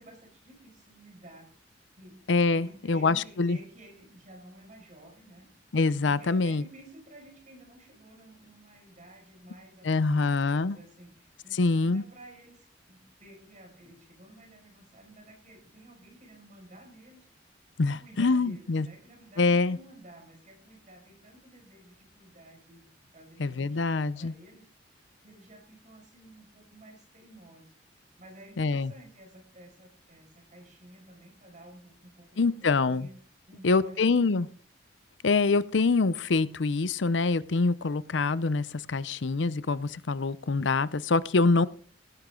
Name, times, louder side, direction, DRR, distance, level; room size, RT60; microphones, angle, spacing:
voice 1, 0.0-1.6 2.0-5.5 6.1-17.3 17.8-33.2 33.5-34.5, right 1 dB, 45° right, 2 dB, 5.6 m, -52 dB
voice 2, 2.3-3.6 5.7-6.6 9.8-10.8 11.5-12.0 17.8-18.9 19.4-19.8 23.4-24.3 28.6-28.9 32.4-33.1 33.6-34.5 35.2-41.7, left 3 dB, 75° left, 18 dB, 0.6 m, -25 dB
17.0 x 10.5 x 3.8 m, 0.43 s
head